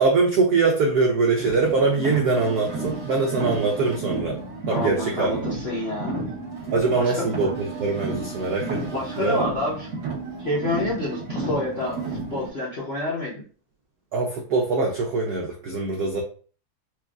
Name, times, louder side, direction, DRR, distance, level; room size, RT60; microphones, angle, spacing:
voice 1, 0.0-4.4 4.7-5.4 6.7-8.8 9.2-9.4 14.1-16.2, right 4 dB, 85° right, 0 dB, 0.8 m, -22 dB
Car, 1.4-12.5, right 3 dB, 45° right, 1.2 m, -32 dB
voice 2, 4.7-6.2 6.9-7.3 8.8-9.9 10.4-13.4, left 2 dB, 70° left, -5 dB, 0.6 m, -28 dB
4.4 x 2.6 x 2.4 m, 0.41 s
omnidirectional pair, 2.4 m